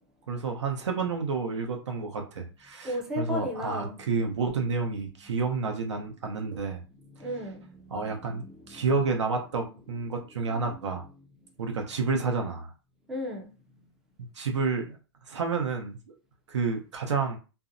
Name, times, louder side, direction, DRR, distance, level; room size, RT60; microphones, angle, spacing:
voice 1, 0.3-6.8 7.9-11.1 11.6-12.7 14.3-15.0 15.3-16.1 16.5-17.4, right 4 dB, 90° right, 0.8 m, -30 dB
voice 2, 2.8-4.0 7.2-8.9 10.5-10.8 13.1-13.5, left 1 dB, 5° right, 0.3 m, -35 dB
2.5 x 2.1 x 2.5 m
hypercardioid pair, 155°, 14 cm